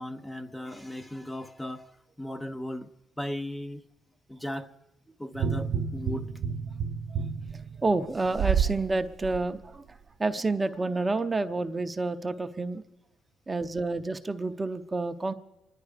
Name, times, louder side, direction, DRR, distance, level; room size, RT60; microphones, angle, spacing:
voice 1, 0.0-2.9 3.2-3.8 4.3-4.8 5.2-6.3, left 1 dB, 10° left, 0.7 m, -37 dB
sound 1, 5.3-8.8 9.2-9.4, right 7 dB, 70° right, 0.8 m, -29 dB
voice 2, 7.5-12.8 13.5-15.3, right 3 dB, 25° right, 0.7 m, -29 dB
26.0 x 11.0 x 5.0 m
cardioid pair, 90°, 0 cm